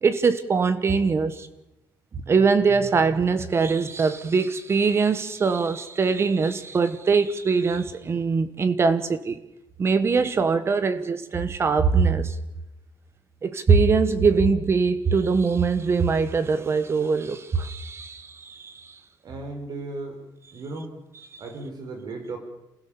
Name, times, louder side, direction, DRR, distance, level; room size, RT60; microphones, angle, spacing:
voice 1, 0.0-1.5 2.1-9.4 9.8-12.3 13.4-18.9 21.3-21.4, right 5 dB, 30° right, 1.4 m, -22 dB
voice 2, 19.2-20.2 20.5-20.9 21.4-22.4, right 3 dB, 55° right, 4.8 m, -35 dB
28.0 x 16.5 x 7.1 m
wide cardioid pair, 170°, 8 cm